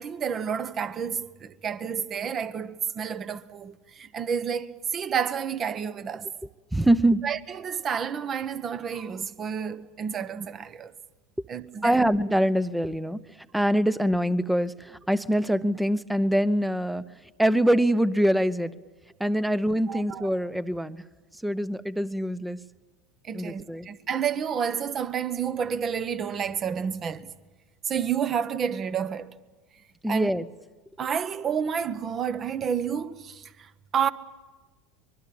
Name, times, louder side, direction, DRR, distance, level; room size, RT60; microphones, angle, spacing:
voice 1, 0.0-6.3 7.2-10.9 11.5-12.1 19.9-20.3 23.2-27.3 27.8-29.3 30.1-30.3 31.0-34.1, right 7 dB, 30° right, 1.1 m, -30 dB
voice 2, 6.7-7.3 11.8-13.2 13.5-17.0 17.4-18.7 19.2-21.0 21.4-22.6 23.3-23.9 30.0-30.5, right 1 dB, 5° right, 0.8 m, -24 dB
24.0 x 22.5 x 8.8 m
figure-of-eight pair, 75°, 0 cm